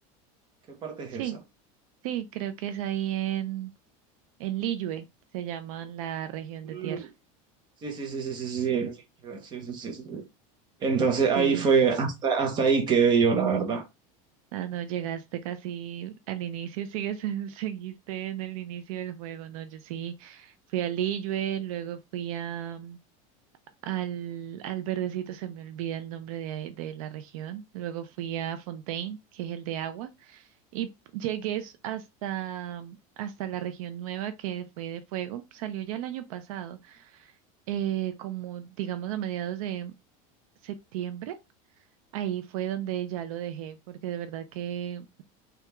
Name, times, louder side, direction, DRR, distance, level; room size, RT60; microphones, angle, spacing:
voice 1, 0.7-1.2 6.7-7.1 7.8-8.9 9.2-10.2 10.8-13.8, right 5 dB, 25° right, 0.7 m, -25 dB
voice 2, 2.0-3.7 4.4-5.1 5.3-7.1 11.4-11.7 14.5-23.0 23.8-37.3 37.7-39.9 40.6-41.4 42.1-45.2, right 11 dB, 75° right, 0.4 m, -34 dB
3.3 x 2.3 x 2.9 m
supercardioid pair, 165°, 18 cm